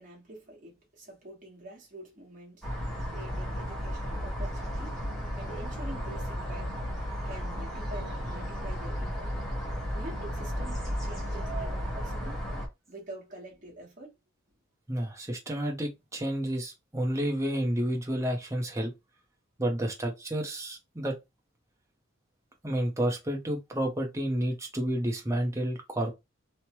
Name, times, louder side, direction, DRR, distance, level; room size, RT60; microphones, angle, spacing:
voice 1, 0.0-2.7 3.1-5.0 5.3-6.7 7.2-9.3 9.9-12.4 12.9-14.1, right 1 dB, 40° right, 1.3 m, -46 dB
sound 1, 2.6-12.7, equal, ahead, 1.1 m, -34 dB
voice 2, 14.9-18.9 19.6-21.1 22.6-26.1, right 1 dB, 15° right, 0.7 m, -30 dB
3.1 x 2.1 x 3.0 m
head